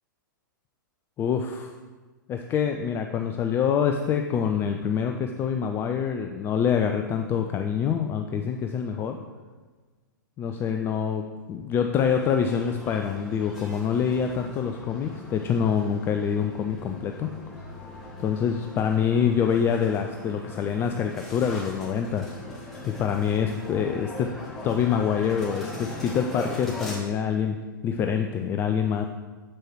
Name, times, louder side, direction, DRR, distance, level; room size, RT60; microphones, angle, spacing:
voice 1, 1.2-1.7 2.3-9.2 10.4-11.2 11.5-17.3 18.2-22.3 22.8-24.3 24.6-27.6 27.8-29.0, left 7 dB, 20° left, 5 dB, 0.4 m, -26 dB
sound 1, 12.1-27.0, left 1 dB, ahead, 1.8 m, -40 dB
7.3 x 4.5 x 4.6 m, 1.3 s
figure-of-eight pair, 105°, 11 cm